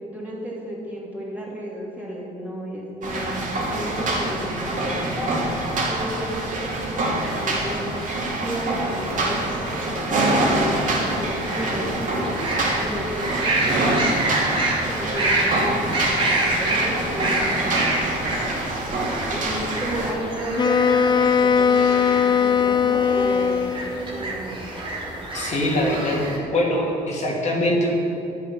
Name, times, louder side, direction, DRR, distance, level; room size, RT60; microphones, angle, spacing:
voice 1, 0.0-5.4 5.9-8.0 8.4-12.3 12.8-13.9 14.9-18.0 19.3-23.7 24.1-24.6, equal, 10° right, -5 dB, 2.9 m, -33 dB
sound 1, 3.0-20.1, right 2 dB, 50° right, 2.6 m, -26 dB
sound 2, 7.1-26.4, right 2 dB, 30° right, 2.3 m, -28 dB
Wind instrument woodwind instrument, 20.6-24.1, left 7 dB, 25° left, 0.4 m, -19 dB
voice 2, 25.3-26.2 26.5-28.0, left 1 dB, 45° left, -3 dB, 2.3 m, -22 dB
10.5 x 8.7 x 5.9 m, 2.7 s
cardioid pair, 110°, 17 cm